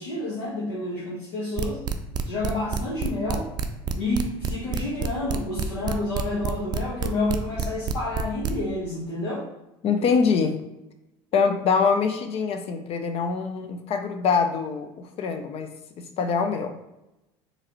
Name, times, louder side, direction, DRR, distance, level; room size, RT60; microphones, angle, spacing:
voice 1, 0.0-1.8 2.2-3.5 3.9-9.4, left 2 dB, 80° left, -6 dB, 1.2 m, -29 dB
sound 1, 1.6-8.5, right 7 dB, 35° right, 0.4 m, -27 dB
voice 2, 9.8-10.6 11.3-15.7 16.0-16.8, left 5 dB, 50° left, 7 dB, 0.6 m, -24 dB
4.8 x 3.2 x 3.0 m, 0.92 s
hypercardioid pair, 80°, 13 cm